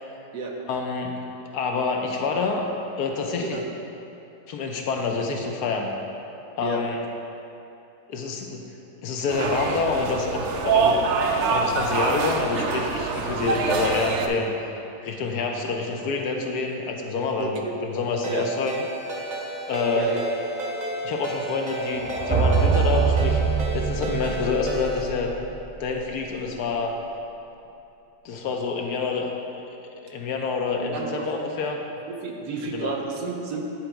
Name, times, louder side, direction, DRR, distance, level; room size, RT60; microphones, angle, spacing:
voice 1, 0.7-1.3 1.5-2.7 3.0-3.6 4.5-5.9 6.6-7.0 8.1-8.7 9.0-11.0 11.3-14.5 15.0-18.7 19.7-20.1 21.0-23.4 23.7-25.3 25.8-27.0 28.2-29.3 30.0-31.8 32.7-33.0, left 4 dB, 70° left, 2 dB, 1.1 m, -27 dB
sound 1, 9.3-14.3, right 4 dB, 85° right, 0.6 m, -25 dB
voice 2, 17.4-17.8 18.3-18.4 19.9-20.2 30.7-31.3 32.1-33.6, right 4 dB, 70° right, 1 dB, 1.3 m, -31 dB
Ringtone, 18.2-25.1, right 1 dB, 55° right, 1.4 m, -33 dB
sound 2, 22.0-25.9, right 5 dB, 5° right, 0.9 m, -24 dB
9.9 x 3.9 x 4.5 m, 2.8 s
omnidirectional pair, 1.9 m